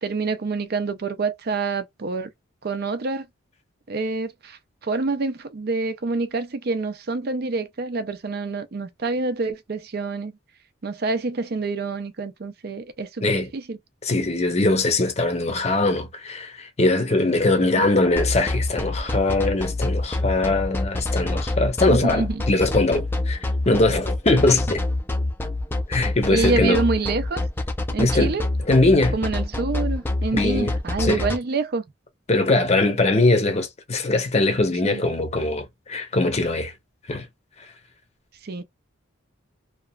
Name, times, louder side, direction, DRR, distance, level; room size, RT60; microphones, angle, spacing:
voice 1, 0.0-2.3 2.6-3.3 3.9-10.4 10.8-13.8 17.6-18.0 21.6-22.4 26.3-27.5 27.9-28.5 29.1-31.8 34.8-35.0 38.4-38.6, right 3 dB, 50° right, 0.5 m, -27 dB
voice 2, 14.0-23.4 23.7-24.8 25.9-26.8 28.0-28.3 28.7-29.2 30.3-30.7 31.0-31.2 32.3-36.7 37.1-37.3, left 2 dB, 30° left, 0.8 m, -21 dB
sound 1, 18.2-31.4, left 2 dB, 10° left, 0.4 m, -25 dB
2.8 x 2.4 x 2.2 m
head